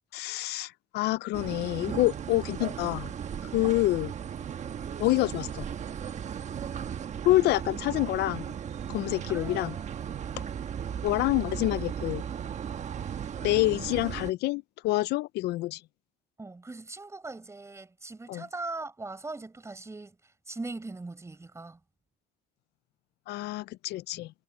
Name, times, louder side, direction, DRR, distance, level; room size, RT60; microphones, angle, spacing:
voice 1, 0.1-3.1 3.5-4.1 5.0-5.7 7.2-8.5 8.9-9.7 11.0-12.2 13.4-15.8 18.3-18.4 23.3-24.3, left 18 dB, 75° left, 0.5 m, -27 dB
sound 1, 1.3-14.3, right 8 dB, 45° right, 1.2 m, -36 dB
voice 2, 7.3-7.6 9.3-10.6 16.4-20.1 20.5-21.8, right 3 dB, 15° right, 4.8 m, -41 dB
cardioid pair, 110°, 17 cm